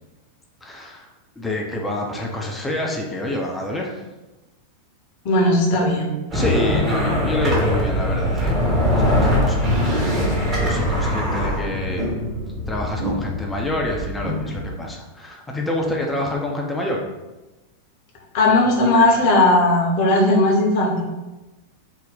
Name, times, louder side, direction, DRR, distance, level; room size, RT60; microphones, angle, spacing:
voice 1, 0.6-1.1 1.4-3.9 6.3-8.6 8.9-9.7 10.6-12.2 12.7-17.0, left 1 dB, 10° left, 0 dB, 0.4 m, -27 dB
voice 2, 5.2-6.1 18.3-21.0, left 2 dB, 45° left, 0 dB, 0.7 m, -17 dB
sound 1, 6.3-14.7, left 1 dB, 25° right, 1.0 m, -22 dB
2.5 x 2.1 x 3.8 m, 1.1 s
figure-of-eight pair, 90°, 0 cm